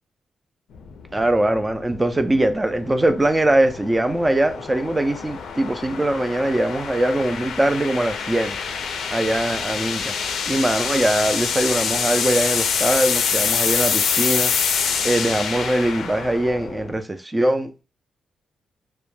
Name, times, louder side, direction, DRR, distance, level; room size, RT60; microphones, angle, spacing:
sound 1, 0.7-17.0, left 6 dB, 80° left, 0.3 m, -26 dB
voice 1, 1.1-8.6 9.1-10.1 10.5-14.5 15.0-17.8, right 1 dB, 15° right, 0.3 m, -21 dB
2.2 x 2.1 x 3.0 m
cardioid pair, 115°, 0 cm